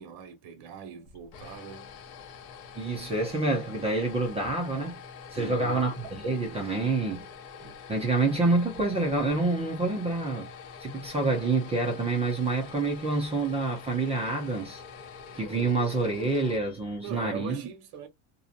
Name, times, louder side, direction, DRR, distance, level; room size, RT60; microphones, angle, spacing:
voice 1, 0.0-2.0 5.3-5.9 15.5-15.8 17.0-18.1, right 7 dB, 50° right, 1.1 m, -41 dB
sound 1, 1.0-17.3, left 6 dB, 45° left, 0.7 m, -46 dB
voice 2, 2.7-5.0 5.3-7.2 7.6-10.5 10.8-14.8 15.3-17.6, right 3 dB, 15° right, 0.3 m, -27 dB
2.6 x 2.1 x 2.4 m
cardioid pair, 145°, 49 cm